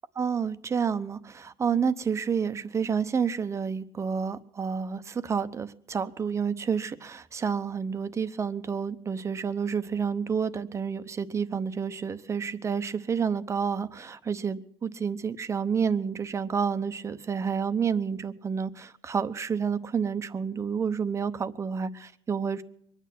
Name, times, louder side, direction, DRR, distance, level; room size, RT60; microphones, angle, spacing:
voice 1, 0.2-22.6, right 6 dB, 25° right, 12 dB, 0.8 m, -29 dB
23.5 x 9.4 x 6.0 m, 0.69 s
cardioid pair, 140°, 11 cm